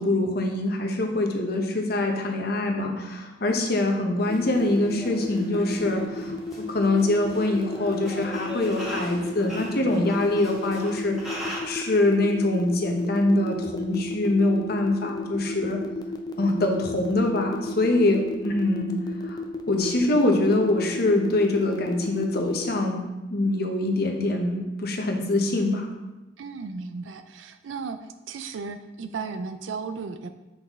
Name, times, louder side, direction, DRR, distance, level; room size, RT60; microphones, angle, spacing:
voice 1, 0.0-15.8 16.4-18.9 19.2-19.4 19.7-23.0 23.3-25.9, left 2 dB, 55° left, 3 dB, 0.9 m, -24 dB
sound 1, 4.2-11.6, equal, ahead, 1.4 m, -40 dB
sound 2, 4.3-22.7, left 4 dB, 20° left, 0.5 m, -33 dB
voice 2, 26.4-28.0 28.3-30.3, right 4 dB, 80° right, 10 dB, 0.4 m, -35 dB
7.6 x 4.1 x 3.5 m, 1.1 s
head